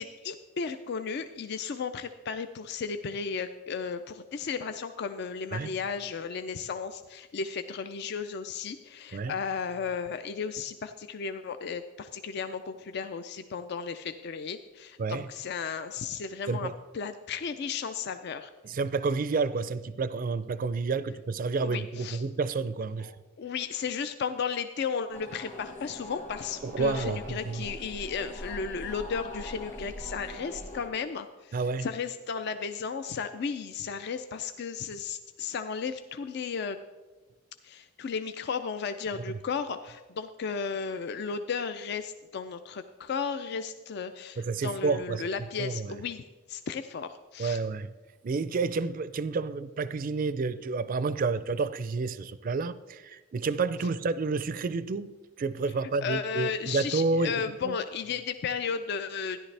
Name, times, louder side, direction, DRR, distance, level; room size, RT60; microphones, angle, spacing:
voice 1, 0.0-18.5 21.6-22.2 23.0-36.8 37.6-47.6 56.0-59.4, left 6 dB, 55° left, 9 dB, 0.4 m, -34 dB
voice 2, 18.6-23.1 26.6-27.7 31.5-31.9 39.3-39.4 44.4-45.3 45.6-46.0 47.4-47.9 48.2-57.8, right 4 dB, 45° right, 15 dB, 0.4 m, -30 dB
sound 1, 25.1-30.9, left 1 dB, 35° left, 1.7 m, -42 dB
13.0 x 11.0 x 3.3 m, 1.2 s
head